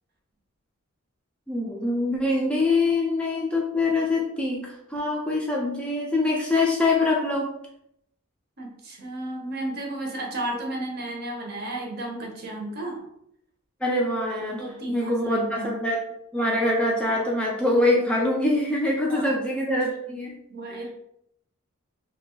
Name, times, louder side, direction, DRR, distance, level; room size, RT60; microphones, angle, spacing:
voice 1, 1.5-7.5 13.8-16.0 16.3-20.3 20.7-20.8, left 2 dB, 5° left, -3 dB, 0.3 m, -24 dB
voice 2, 8.6-13.0 14.6-15.7 19.1-19.3 20.5-20.9, right 1 dB, 50° right, 0 dB, 0.7 m, -33 dB
2.5 x 2.3 x 2.9 m, 0.76 s
head